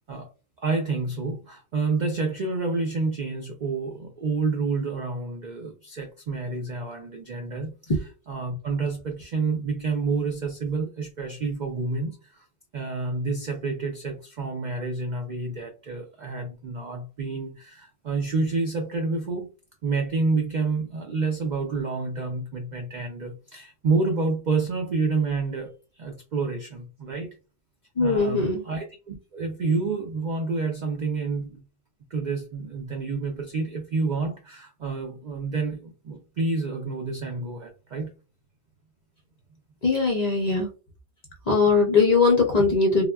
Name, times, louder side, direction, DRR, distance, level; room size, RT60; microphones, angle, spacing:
voice 1, 0.6-8.0 8.3-12.4 12.7-19.5 19.8-27.3 28.0-31.6 32.1-38.1, right 3 dB, 75° right, 0.4 m, -29 dB
voice 2, 28.0-28.6 39.8-40.7 41.5-43.1, left 4 dB, 50° left, 0.5 m, -20 dB
3.5 x 2.1 x 2.2 m
omnidirectional pair, 1.3 m